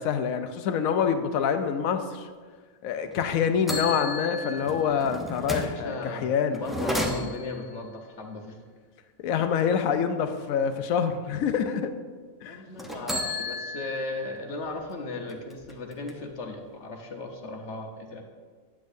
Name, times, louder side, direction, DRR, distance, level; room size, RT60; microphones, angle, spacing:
voice 1, 0.0-2.3 2.8-6.6 9.2-11.9 12.4-12.6, left 7 dB, 85° left, 8 dB, 1.0 m, -26 dB
sound 1, 3.0-3.2 3.7-5.8 6.5-7.6 12.8-14.4 14.8-14.9 15.3-16.3, left 1 dB, ahead, 0.3 m, -33 dB
voice 2, 5.8-8.6 12.4-18.2, left 3 dB, 60° left, 2 dB, 1.2 m, -36 dB
9.8 x 8.3 x 2.6 m, 1.5 s
omnidirectional pair, 1.4 m